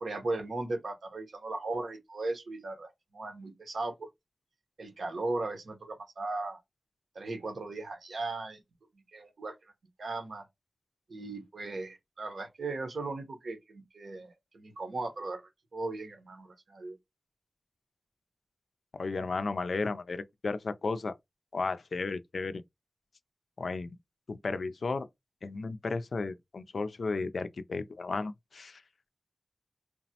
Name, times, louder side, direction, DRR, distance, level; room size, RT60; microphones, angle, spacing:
voice 1, 0.0-4.1 4.8-6.6 7.1-8.6 9.1-9.7 10.0-10.4 11.1-15.4 15.7-17.0, right 2 dB, 85° right, 0.8 m, -37 dB
voice 2, 18.9-21.2 21.5-22.6 23.6-24.0 24.3-25.1 25.4-28.8, left 3 dB, 80° left, 0.3 m, -34 dB
3.2 x 2.0 x 2.7 m
wide cardioid pair, 60°, 0 cm